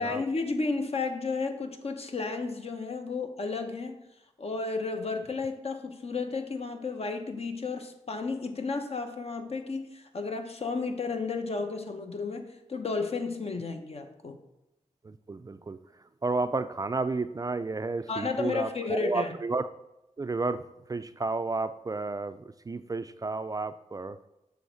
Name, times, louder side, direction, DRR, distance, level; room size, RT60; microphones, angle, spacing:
voice 1, 0.0-4.0 4.4-14.4 18.1-19.3, left 4 dB, 55° left, 5 dB, 0.9 m, -32 dB
voice 2, 15.0-19.7 20.2-20.6 20.9-24.2, right 3 dB, 30° right, 12 dB, 0.3 m, -32 dB
7.0 x 3.4 x 6.3 m, 0.91 s
cardioid pair, 60°, 12 cm